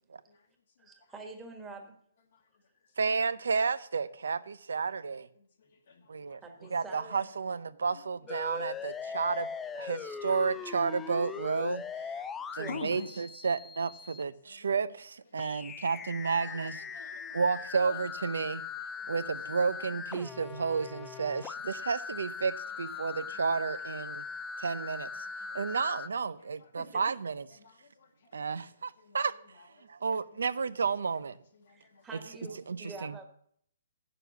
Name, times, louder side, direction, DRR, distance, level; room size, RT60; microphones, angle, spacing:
voice 1, 0.8-1.9 6.4-7.3 12.6-12.8 26.8-26.9 31.7-33.2, right 3 dB, 10° right, 1.4 m, -46 dB
voice 2, 3.0-5.3 6.1-6.4 6.7-9.5 9.7-12.1 12.6-16.8 17.3-18.6 19.1-24.3 24.6-25.1 25.5-27.6 28.3-29.3 29.9-31.4 32.7-33.2, right 5 dB, 85° right, 0.7 m, -31 dB
voice 3, 5.4-6.7 8.8-9.2 10.5-10.6 12.7-13.2 14.4-14.7 15.4-15.5 16.3-18.0 19.0-19.1 19.7-19.9 20.8-20.9 23.0-23.1 23.3-23.5 25.5-25.6 26.4-26.7 27.5-28.4 29.0-29.2 29.8-30.4 31.5-32.0 32.7-33.0, left 5 dB, 60° left, 1.3 m, -48 dB
sound 1, 8.3-14.2 15.4-26.1, left 6 dB, 10° left, 0.3 m, -40 dB
9.2 x 6.8 x 7.0 m
hypercardioid pair, 165°, 0 cm